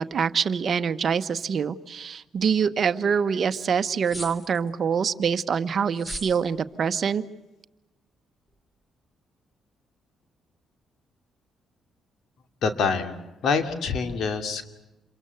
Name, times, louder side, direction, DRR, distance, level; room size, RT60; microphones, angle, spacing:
voice 1, 0.0-7.2, right 6 dB, 50° right, 12 dB, 1.0 m, -25 dB
sound 1, 4.0-4.7 5.9-6.4, equal, 15° left, 3.2 m, -37 dB
voice 2, 12.6-13.2 13.4-14.6, left 5 dB, 65° left, 7 dB, 2.6 m, -25 dB
28.0 x 23.5 x 8.1 m, 1.0 s
cardioid pair, 90°, 0 cm